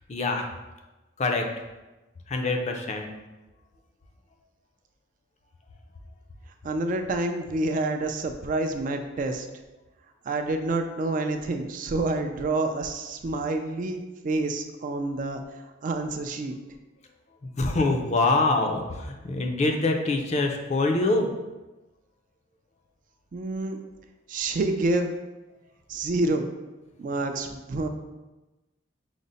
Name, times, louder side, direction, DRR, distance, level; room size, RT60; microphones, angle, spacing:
voice 1, 0.1-0.4 1.2-1.5 2.3-3.1 17.6-21.3, left 2 dB, 35° left, 3 dB, 0.4 m, -24 dB
voice 2, 6.6-9.5 10.3-15.4 15.8-16.6 23.3-23.8 24.3-25.2 25.9-26.5 27.0-27.9, right 2 dB, 45° right, 5 dB, 0.3 m, -28 dB
5.0 x 2.0 x 4.0 m, 1.1 s
head